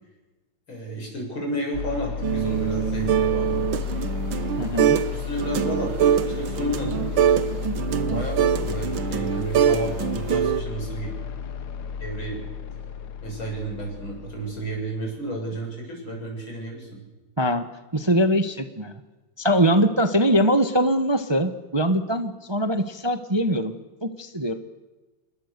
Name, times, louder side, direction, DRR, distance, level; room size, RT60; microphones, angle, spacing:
voice 1, 0.7-3.6 4.9-7.1 8.1-11.1 12.0-12.5 13.2-16.9, right 1 dB, 85° left, 1 dB, 8.0 m, -32 dB
sound 1, 1.7-14.8, left 6 dB, 60° left, 1.6 m, -32 dB
sound 2, 2.2-5.1 5.4-10.6, right 9 dB, 85° right, 1.9 m, -24 dB
voice 2, 4.6-5.0 17.4-17.7 17.9-19.0 19.4-23.8 24.0-24.5, equal, 15° right, 8 dB, 1.0 m, -22 dB
28.5 x 21.5 x 6.8 m, 1.2 s
omnidirectional pair, 2.2 m